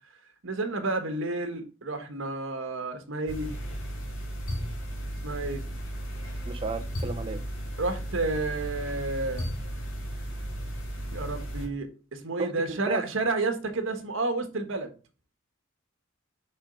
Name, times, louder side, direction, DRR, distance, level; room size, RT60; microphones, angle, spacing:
voice 1, 0.4-3.5 5.2-5.6 7.8-9.5 11.1-14.9, right 3 dB, 65° right, 1.3 m, -30 dB
sound 1, 3.3-11.7, equal, 75° left, 2.5 m, -35 dB
voice 2, 6.5-7.4 12.4-13.0, right 3 dB, 25° right, 0.7 m, -34 dB
5.0 x 4.4 x 5.0 m
head